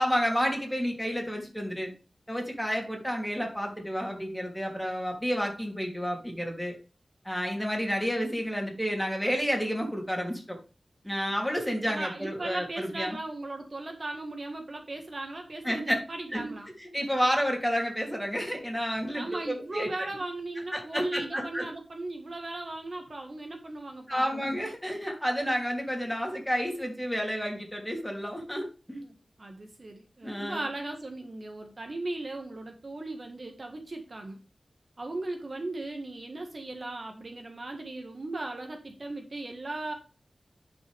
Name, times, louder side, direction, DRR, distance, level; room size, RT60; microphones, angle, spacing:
voice 1, 0.0-1.9 2.3-6.8 7.2-10.6 11.0-13.2 15.6-16.0 16.3-16.5 16.8-19.9 20.7-21.7 24.1-29.0 30.2-30.6, equal, 5° left, 1 dB, 2.9 m, -30 dB
voice 2, 11.8-16.7 19.1-24.4 29.0-34.4 35.0-39.9, right 2 dB, 55° right, 4 dB, 1.5 m, -37 dB
10.5 x 5.6 x 3.4 m, 0.33 s
wide cardioid pair, 80°, 0 cm